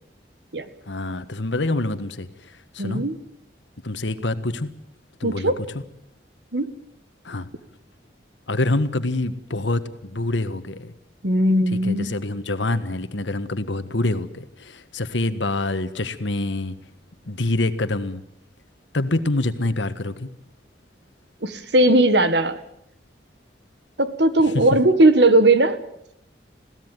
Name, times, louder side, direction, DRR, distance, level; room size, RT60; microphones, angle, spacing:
voice 1, 0.9-3.0 3.8-4.7 5.2-5.8 7.2-7.5 8.5-10.9 11.7-16.7 17.3-18.2 18.9-20.3 24.5-24.6, left 2 dB, 85° left, 11 dB, 1.5 m, -26 dB
voice 2, 2.8-3.2 5.2-5.5 6.5-6.7 11.2-12.1 21.4-22.6 24.0-25.8, right 1 dB, 70° right, 11 dB, 1.7 m, -18 dB
21.5 x 16.5 x 9.2 m, 0.75 s
head